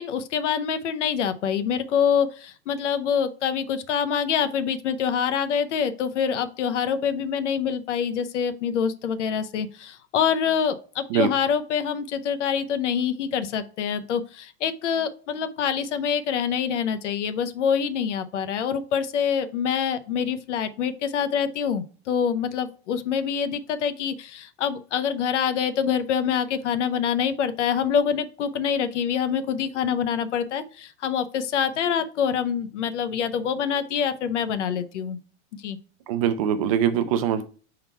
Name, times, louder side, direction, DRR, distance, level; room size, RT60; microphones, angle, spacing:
voice 1, 0.0-35.2 35.5-35.8, left 7 dB, 80° left, 0.8 m, -25 dB
voice 2, 36.1-37.4, right 9 dB, 30° right, 0.4 m, -22 dB
4.4 x 3.8 x 5.6 m
supercardioid pair, 155°, 35 cm